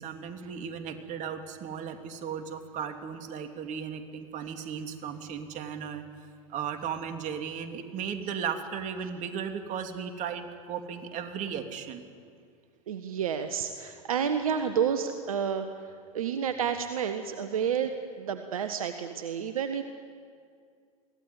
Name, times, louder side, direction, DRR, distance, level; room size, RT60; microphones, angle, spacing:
voice 1, 0.0-12.0, right 7 dB, 45° right, 6 dB, 2.8 m, -36 dB
voice 2, 12.9-15.7 16.1-19.8, right 7 dB, 75° right, 8 dB, 1.4 m, -30 dB
23.5 x 17.0 x 9.6 m, 2.2 s
hypercardioid pair, 85°, 18 cm